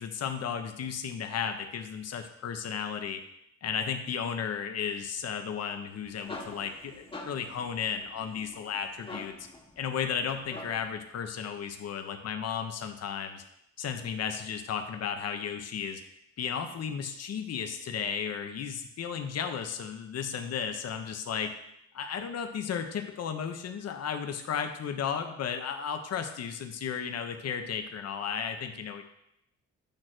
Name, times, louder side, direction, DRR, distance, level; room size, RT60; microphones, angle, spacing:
voice 1, 0.0-3.2 3.6-9.3 9.8-13.4 13.8-16.0 16.4-21.5 21.9-29.0, left 7 dB, 55° left, 6 dB, 1.0 m, -34 dB
sound 1, 5.8-11.0, left 2 dB, 15° left, 1.1 m, -46 dB
8.7 x 3.2 x 6.1 m, 0.78 s
cardioid pair, 90°, 30 cm